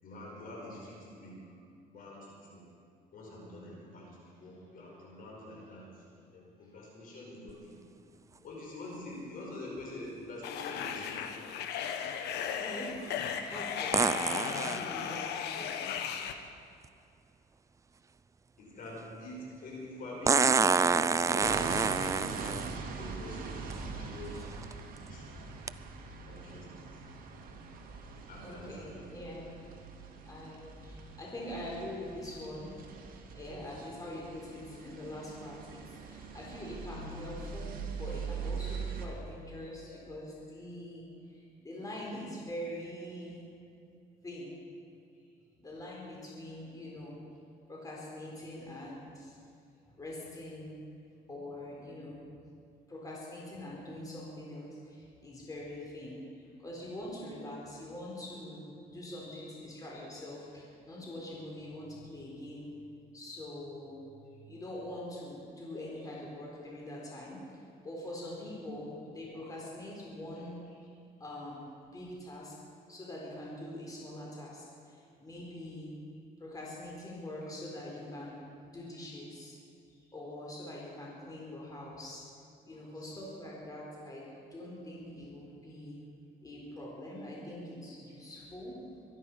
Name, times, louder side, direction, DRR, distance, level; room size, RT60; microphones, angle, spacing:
voice 1, 0.0-1.7 1.9-2.7 3.1-7.8 8.4-11.3 13.6-14.0 15.1-15.2 18.6-22.7 22.9-24.6 25.1-25.5 26.3-27.0 28.3-29.4 30.1-30.3 36.0-36.1 39.6-40.0 45.1-45.3 50.9-51.0 56.5-56.6 58.9-59.6 59.9-60.3 60.8-60.9 64.3-64.4 65.7-66.3 67.7-67.8 77.4-77.5 79.9-80.1 82.7-83.3 84.0-84.1 84.5-84.7 87.6-87.7 88.1-88.2, left 1 dB, 55° left, -2 dB, 5.2 m, -47 dB
sound 1, 7.5-7.6 13.9-14.8 16.8-16.9 20.3-22.7 23.7-23.8 24.4-24.7 25.7-25.8, right 5 dB, 20° right, 0.4 m, -27 dB
sound 2, 10.4-16.3, left 8 dB, 75° left, 1.1 m, -36 dB
voice 2, 12.4-13.1 13.4-15.8 28.1-29.5 30.0-32.7 33.3-43.5 44.2-44.6 45.6-47.2 47.7-49.4 50.0-50.8 51.3-52.3 52.9-62.7 63.1-67.4 67.8-70.6 71.2-72.6 72.9-75.9 76.4-78.4 78.7-79.6 80.1-82.2 82.6-86.0 86.4-88.8, left 1 dB, 20° left, -4 dB, 4.2 m, -44 dB
sound 3, 21.4-39.1, right 5 dB, 60° right, 2.1 m, -42 dB
23.5 x 11.0 x 5.6 m, 2.4 s
cardioid pair, 110°, 17 cm